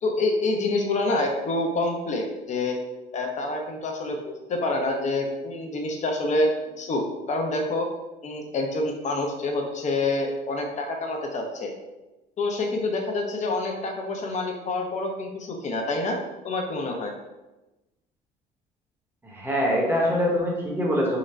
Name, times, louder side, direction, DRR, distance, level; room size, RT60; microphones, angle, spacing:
voice 1, 0.0-2.8 3.1-6.5 6.8-7.9 8.2-11.7 12.4-16.2 16.4-17.1, left 2 dB, 45° left, 2 dB, 0.7 m, -27 dB
voice 2, 19.2-21.2, equal, 10° right, -3 dB, 1.0 m, -24 dB
3.8 x 2.1 x 4.2 m, 1.0 s
cardioid pair, 110°, 17 cm